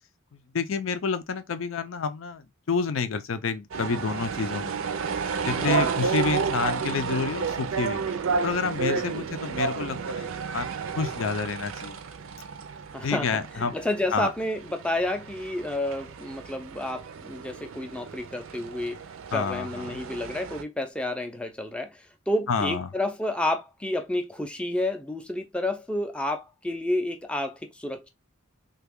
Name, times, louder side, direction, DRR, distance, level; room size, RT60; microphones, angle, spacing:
voice 1, 0.3-4.8 5.5-8.0 8.4-12.0 13.0-13.7 14.1-14.3 19.3-20.0 22.5-22.9, left 5 dB, 70° left, 0.5 m, -29 dB
sound 1, 3.7-20.6, right 5 dB, 75° right, 0.5 m, -32 dB
voice 2, 5.6-5.9 8.9-9.2 12.9-19.0 19.3-21.9 22.3-28.1, left 1 dB, 5° left, 0.4 m, -30 dB
3.3 x 2.3 x 3.5 m
head